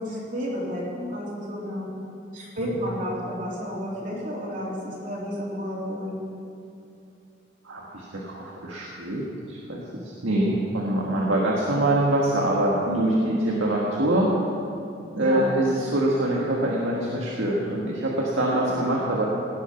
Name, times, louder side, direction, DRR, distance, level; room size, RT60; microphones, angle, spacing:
voice 1, 0.0-1.9 2.3-6.1 12.8-13.7 15.1-15.5 18.5-18.8, equal, 40° right, -6 dB, 3.0 m, -30 dB
voice 2, 7.6-14.3 15.1-19.2, right 1 dB, 85° right, -4 dB, 1.7 m, -25 dB
17.5 x 8.4 x 5.8 m, 2.7 s
head